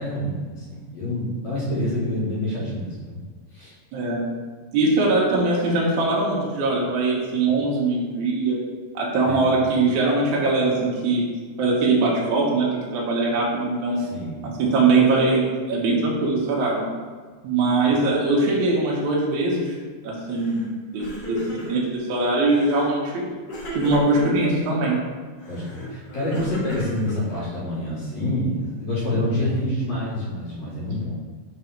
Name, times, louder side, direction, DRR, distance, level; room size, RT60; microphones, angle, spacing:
voice 1, 0.0-3.2 3.5-3.7 9.3-9.4 14.0-14.4 17.9-18.0 25.5-31.1, left 1 dB, 50° left, -7 dB, 2.5 m, -27 dB
voice 2, 3.9-4.2 4.7-8.6 8.9-11.2 11.6-14.0 14.4-15.4 15.7-16.8 17.4-19.7 20.0-20.7 20.9-23.2 23.7-25.0, right 3 dB, 70° right, -5 dB, 1.9 m, -21 dB
Crying sobbing, 20.3-20.7 20.9-22.0 22.5-22.9 23.5-24.5 25.4-27.6, left 1 dB, 70° left, 1.2 m, -35 dB
6.3 x 3.4 x 5.7 m, 1.5 s
omnidirectional pair, 4.9 m